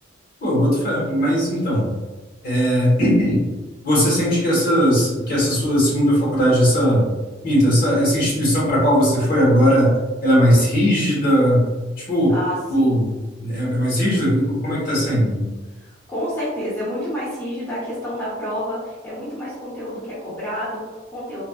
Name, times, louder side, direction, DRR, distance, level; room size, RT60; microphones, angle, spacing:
voice 1, 0.4-1.9 2.4-3.4 3.8-7.1 7.4-9.9 10.2-11.7 12.0-12.4 12.7-15.4, equal, 50° left, -6 dB, 1.2 m, -18 dB
voice 2, 12.3-13.1 15.9-21.4, equal, 15° left, -9 dB, 0.8 m, -29 dB
3.3 x 2.2 x 2.3 m, 1.2 s
head